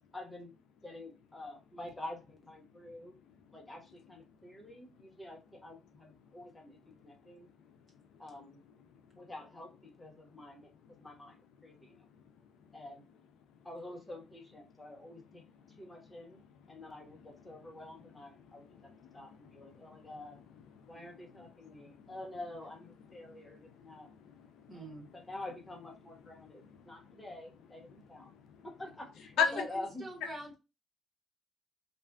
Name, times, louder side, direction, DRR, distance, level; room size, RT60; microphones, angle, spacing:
voice 1, 0.1-0.5 0.8-3.1 3.5-6.8 7.0-7.5 8.2-8.6 9.2-9.7 10.0-11.3 11.6-12.0 12.7-13.0 13.6-15.4 15.8-16.4 16.7-18.6 19.1-20.4 20.9-24.1 24.7-28.3 28.6-30.0, left 1 dB, 15° left, 1.1 m, -47 dB
voice 2, 17.6-18.1 18.4-20.4 20.7-22.1 23.1-23.6 23.9-24.9 26.4-27.1 27.9-28.6 29.4-29.5 30.2-30.3, left 7 dB, 90° left, 0.5 m, -40 dB
voice 3, 24.7-25.1 29.4-30.5, right 1 dB, 40° right, 1.1 m, -43 dB
2.5 x 2.5 x 2.3 m
cardioid pair, 90°, 0 cm